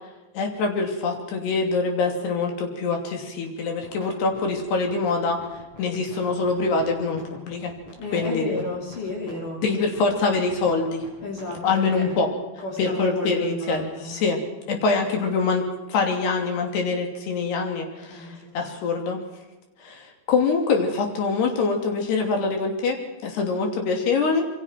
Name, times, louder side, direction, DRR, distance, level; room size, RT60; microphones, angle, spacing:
voice 1, 0.3-5.4 5.8-7.7 8.1-8.6 9.6-11.0 11.6-12.3 12.8-14.4 14.7-19.2 19.8-23.0 23.2-24.4, left 4 dB, 80° left, 2 dB, 4.9 m, -24 dB
sound 1, 3.7-4.1 4.3-12.3, left 1 dB, 30° left, 7.0 m, -44 dB
voice 2, 8.0-9.6 11.2-12.2 12.6-14.2 18.1-18.6, left 2 dB, 55° left, -1 dB, 4.2 m, -32 dB
27.0 x 23.0 x 4.6 m, 1.1 s
omnidirectional pair, 4.7 m